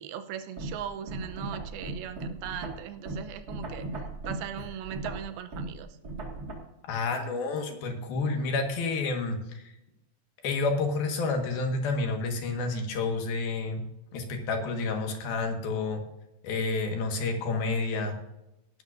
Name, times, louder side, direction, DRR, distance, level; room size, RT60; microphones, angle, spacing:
voice 1, 0.0-5.9, right 9 dB, 85° right, 9 dB, 2.7 m, -39 dB
sound 1, 0.6-6.5, right 2 dB, 35° right, 1.8 m, -37 dB
voice 2, 6.9-9.7 10.4-13.8 14.1-16.0 16.4-18.2, left 3 dB, 75° left, 3 dB, 3.5 m, -29 dB
18.5 x 12.0 x 2.6 m, 0.91 s
omnidirectional pair, 4.3 m